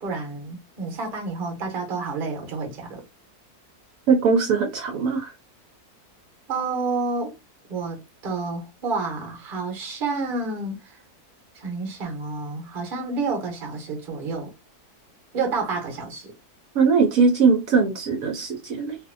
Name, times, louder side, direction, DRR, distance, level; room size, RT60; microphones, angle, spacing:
voice 1, 0.0-3.0 6.5-7.3 7.7-11.0 11.5-14.5 15.3-16.3, right 3 dB, 40° right, 0.9 m, -29 dB
voice 2, 4.1-5.3 16.7-19.0, right 5 dB, 70° right, 1.0 m, -20 dB
2.6 x 2.5 x 2.5 m
omnidirectional pair, 1.6 m